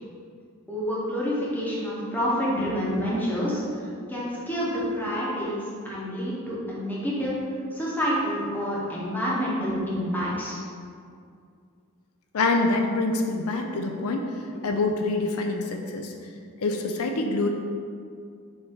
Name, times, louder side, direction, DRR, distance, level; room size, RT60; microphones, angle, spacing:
voice 1, 0.7-7.3 7.7-10.6, equal, 10° left, -7 dB, 1.4 m, -28 dB
voice 2, 12.3-14.3 14.6-16.1 16.6-17.5, left 3 dB, 80° left, 4 dB, 0.5 m, -25 dB
7.1 x 3.2 x 4.9 m, 2.3 s
head